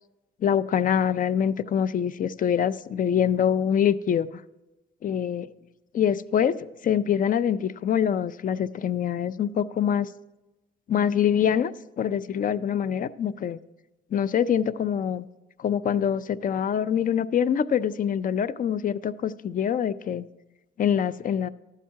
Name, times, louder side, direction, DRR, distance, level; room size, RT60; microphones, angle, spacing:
voice 1, 0.4-4.3 5.0-5.5 5.9-10.1 10.9-13.6 14.1-15.3 15.6-20.2 20.8-21.5, left 8 dB, 45° left, 15 dB, 0.4 m, -25 dB
12.0 x 7.4 x 4.6 m, 1.0 s
cardioid pair, 90°, 20 cm